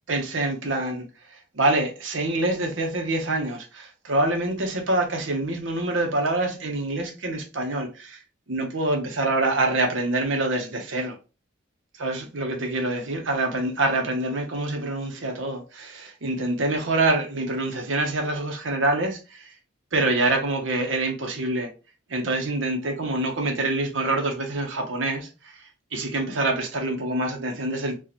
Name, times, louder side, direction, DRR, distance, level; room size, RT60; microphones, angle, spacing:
voice 1, 0.1-1.0 1.5-8.2 8.5-11.2 12.0-19.4 19.9-21.7 22.1-25.3 25.9-28.0, right 2 dB, 70° right, 0.8 m, -26 dB
4.0 x 2.4 x 2.8 m
head